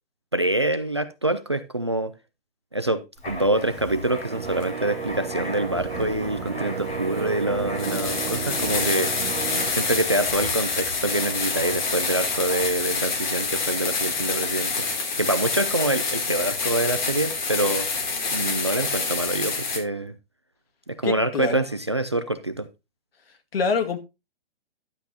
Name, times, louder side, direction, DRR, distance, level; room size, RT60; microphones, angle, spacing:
voice 1, 0.3-2.1 2.7-9.1 9.7-14.8 15.2-17.9 18.3-20.1 20.9-22.7, right 1 dB, 30° right, 0.4 m, -25 dB
Writing, 3.2-13.0, left 1 dB, 20° left, 5.3 m, -38 dB
sound 1, 3.9-9.7, right 6 dB, 70° right, 1.5 m, -33 dB
sound 2, 4.6-4.7 6.5-6.6 7.2-7.3 7.7-19.8, left 4 dB, 45° left, 3.2 m, -27 dB
voice 2, 21.0-21.6 23.5-24.0, left 5 dB, 65° left, 2.1 m, -25 dB
11.5 x 8.1 x 2.8 m
hypercardioid pair, 180°, 31 cm